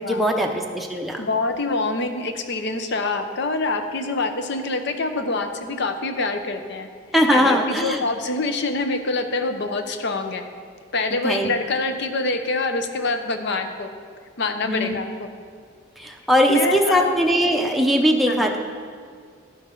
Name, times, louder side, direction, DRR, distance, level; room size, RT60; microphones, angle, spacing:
voice 1, 0.1-1.2 7.1-8.0 11.1-11.5 14.6-15.0 16.0-18.6, equal, ahead, 1 dB, 0.6 m, -20 dB
voice 2, 1.2-6.9 7.3-10.4 10.9-13.9 14.4-15.3 16.5-17.1 18.3-18.5, left 3 dB, 60° left, 7 dB, 0.7 m, -25 dB
12.0 x 6.0 x 3.8 m, 2.1 s
head